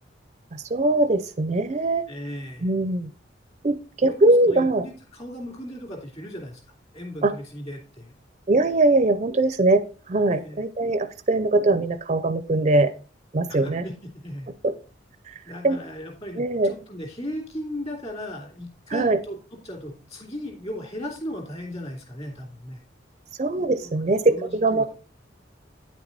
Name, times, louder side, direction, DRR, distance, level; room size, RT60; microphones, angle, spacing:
voice 1, 0.5-2.1 2.6-3.1 3.6-4.8 7.2-7.3 8.5-12.9 13.3-13.8 14.6-14.7 15.6-15.8 16.4-16.7 18.9-19.2 23.4-24.8, right 2 dB, 35° right, 12 dB, 0.4 m, -21 dB
voice 2, 2.1-2.7 4.0-6.6 6.9-8.1 10.3-10.7 13.5-14.5 15.5-22.8 23.8-24.9, equal, 35° left, 2 dB, 2.8 m, -36 dB
9.5 x 5.9 x 4.0 m, 0.38 s
head